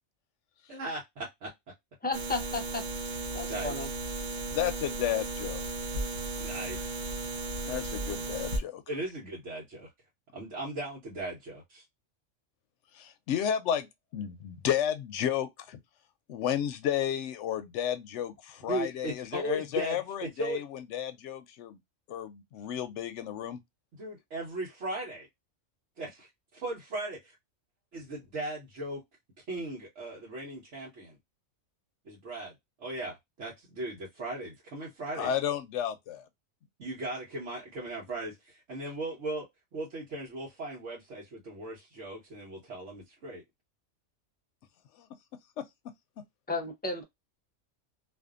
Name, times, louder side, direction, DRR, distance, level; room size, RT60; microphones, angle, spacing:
voice 1, 0.7-1.5 3.5-3.8 6.4-7.0 8.9-9.9 10.3-11.8 18.6-20.6 23.9-25.3 26.0-27.4 27.9-29.0 29.5-31.2 32.0-32.5 32.8-35.3 36.8-39.4 39.7-43.4, right 2 dB, 70° right, 1.2 m, -38 dB
voice 2, 2.0-2.8 3.3-3.9 46.5-47.0, left 3 dB, 15° left, 0.3 m, -33 dB
sound 1, 2.1-8.6, right 2 dB, 50° right, 0.6 m, -35 dB
voice 3, 4.5-5.6 7.6-8.8 12.9-13.9 14.1-15.8 16.3-21.8 22.1-23.6 35.2-36.3 45.0-45.1 45.6-45.7, left 9 dB, 75° left, 0.9 m, -32 dB
2.5 x 2.5 x 2.3 m
omnidirectional pair, 1.3 m